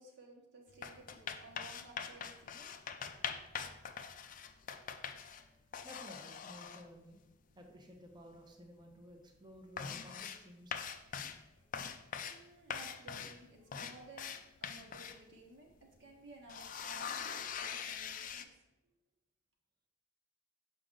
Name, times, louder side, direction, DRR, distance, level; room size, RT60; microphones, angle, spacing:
voice 1, 0.0-2.7 5.3-5.6 11.5-11.7 12.2-14.3 14.6-18.5, right 2 dB, 65° right, 0 dB, 1.2 m, -56 dB
sound 1, 0.7-5.5 5.7-6.8 8.0-8.1 8.4-8.8 9.1-9.2 9.6-10.4 10.7-11.5 11.7-12.4 12.7-15.2 15.8-15.9 16.2-18.4, left 7 dB, 40° left, 0.4 m, -43 dB
voice 2, 5.8-7.2 7.6-10.8, equal, 20° right, 2 dB, 0.7 m, -54 dB
6.7 x 5.0 x 3.8 m, 0.95 s
head